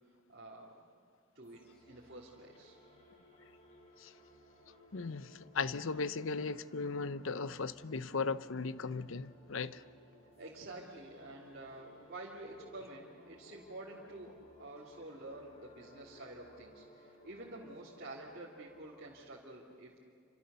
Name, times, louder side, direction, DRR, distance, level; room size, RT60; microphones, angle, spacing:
voice 1, 0.3-0.8 1.3-2.8 10.4-20.0, right 2 dB, 45° right, -6 dB, 3.0 m, -49 dB
sound 1, 1.4-19.2, left 1 dB, 30° left, 4.8 m, -61 dB
voice 2, 4.9-9.8, left 4 dB, 70° left, 15 dB, 0.7 m, -37 dB
28.5 x 26.0 x 6.9 m, 2.3 s
head